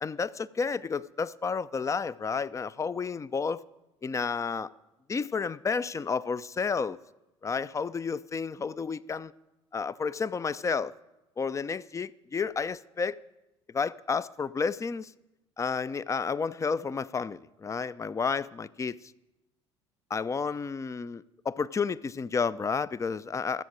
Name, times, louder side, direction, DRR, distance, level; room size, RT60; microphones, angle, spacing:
voice 1, 0.0-3.6 4.0-4.7 5.1-7.0 7.4-9.3 9.7-10.9 11.4-13.2 13.7-15.1 15.6-19.1 20.1-23.6, left 5 dB, 20° left, 0.5 m, -31 dB
14.0 x 8.0 x 8.7 m
figure-of-eight pair, 60°, 16 cm